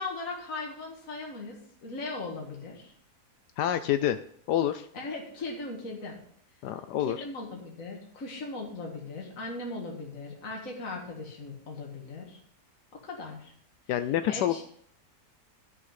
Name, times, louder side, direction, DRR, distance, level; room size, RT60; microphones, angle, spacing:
voice 1, 0.0-1.6 1.8-2.9 4.9-6.2 7.0-12.4 13.0-13.5 14.3-14.6, left 3 dB, 50° left, -1 dB, 2.3 m, -38 dB
voice 2, 3.6-4.2 4.5-4.9 6.6-7.2 13.9-14.6, left 11 dB, 80° left, 10 dB, 1.2 m, -27 dB
12.5 x 6.0 x 5.8 m, 0.63 s
omnidirectional pair, 1.8 m